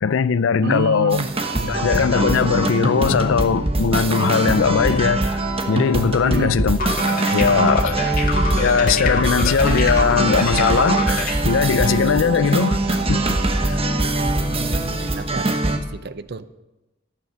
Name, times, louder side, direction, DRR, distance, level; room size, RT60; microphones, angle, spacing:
voice 1, 0.0-1.2 1.6-6.8 7.3-8.0 8.5-13.4 13.6-13.8, left 6 dB, 75° left, 0.4 m, -20 dB
voice 2, 0.6-1.3 6.2-6.6 8.7-8.8 14.2-16.5, right 3 dB, 55° right, 0.6 m, -29 dB
sound 1, 1.1-15.8, right 2 dB, 30° right, 1.0 m, -22 dB
sound 2, 6.8-11.4, left 3 dB, 45° left, 1.9 m, -26 dB
12.5 x 9.0 x 6.4 m
head